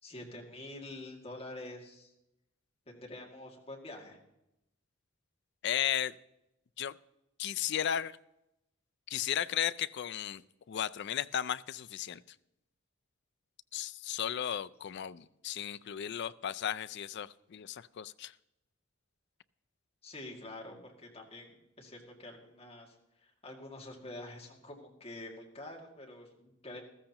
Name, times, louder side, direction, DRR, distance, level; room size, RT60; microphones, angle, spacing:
voice 1, 0.0-2.1 2.9-4.2 20.0-26.9, left 1 dB, 30° left, 0 dB, 2.2 m, -47 dB
voice 2, 5.6-6.2 6.8-6.9 7.4-8.2 9.1-10.4 10.7-12.4 13.7-18.3, left 10 dB, 60° left, 16 dB, 0.4 m, -35 dB
14.5 x 14.0 x 3.0 m, 0.86 s
head